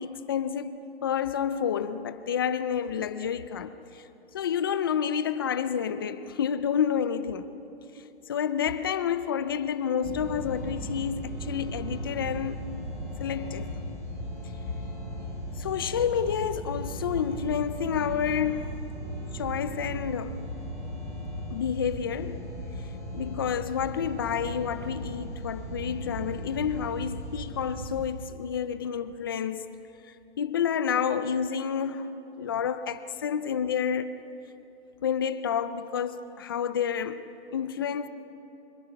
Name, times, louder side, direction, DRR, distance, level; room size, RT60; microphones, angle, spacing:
voice 1, 0.0-4.1 4.3-7.5 8.3-12.6 13.2-13.7 15.6-18.8 19.3-20.4 21.5-22.5 23.1-29.7 30.4-32.1 32.4-34.2 35.0-38.1, left 8 dB, 20° left, 0.4 m, -29 dB
sound 1, 10.0-28.1, equal, 20° right, 5.4 m, -37 dB
25.5 x 22.0 x 5.7 m
hypercardioid pair, 150°, 33 cm